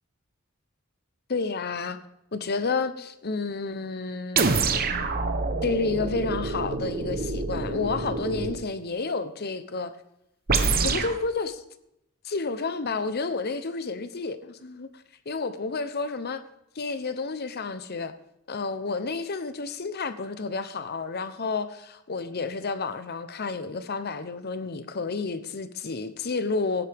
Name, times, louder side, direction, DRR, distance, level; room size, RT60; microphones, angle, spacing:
voice 1, 1.3-2.0 2.3-4.9 5.6-9.9 10.8-11.6 12.2-14.9 15.3-16.4 16.8-18.1 18.5-26.9, left 4 dB, 50° left, 0.8 m, -30 dB
sound 1, 4.4-8.7 10.5-11.2, right 4 dB, 45° right, 1.0 m, -26 dB
16.5 x 9.8 x 3.6 m
head